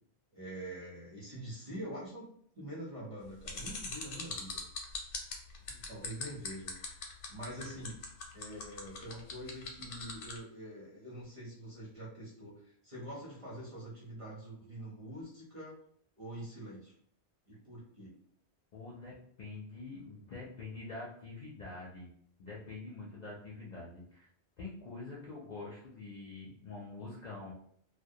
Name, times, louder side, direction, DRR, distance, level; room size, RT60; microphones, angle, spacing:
voice 1, 0.3-4.6 5.9-6.7 7.3-8.0 8.3-15.7 16.2-16.9 17.5-18.1, right 1 dB, 35° right, -5 dB, 0.6 m, -45 dB
sound 1, 3.4-10.4, left 5 dB, 85° left, 0.9 m, -41 dB
voice 2, 18.7-22.1 22.4-24.3 24.6-27.5, left 3 dB, 55° left, -4 dB, 0.5 m, -45 dB
2.1 x 2.1 x 2.7 m, 0.64 s
omnidirectional pair, 1.1 m